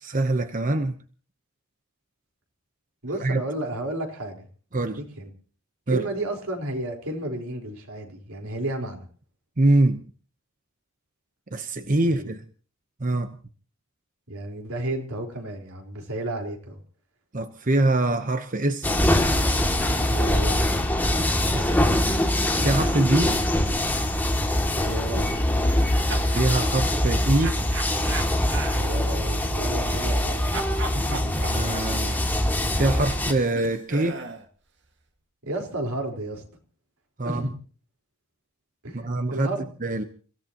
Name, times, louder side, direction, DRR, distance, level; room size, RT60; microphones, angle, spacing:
voice 1, 0.0-0.9 3.2-3.4 4.7-5.0 5.9-6.1 9.6-10.0 11.5-12.4 13.0-13.3 17.3-18.9 21.5-21.7 22.6-23.4 26.3-27.6 31.4-32.2 32.7-34.2 37.2-37.4 38.9-39.5 39.8-40.1, right 2 dB, 35° right, 8 dB, 0.9 m, -24 dB
voice 2, 3.0-4.5 4.8-5.3 5.9-9.0 12.1-12.3 14.3-16.8 20.1-20.6 21.5-22.0 24.7-25.4 28.7-30.4 30.9-31.3 35.4-36.4 37.2-37.6 38.8-39.7, right 1 dB, 80° right, 3 dB, 4.3 m, -32 dB
sound 1, 18.8-33.3, left 1 dB, 10° left, 2.3 m, -23 dB
sound 2, 25.6-26.5 27.4-30.3 30.5-34.5, right 3 dB, 55° right, 1.9 m, -38 dB
29.5 x 16.5 x 3.0 m, 0.41 s
head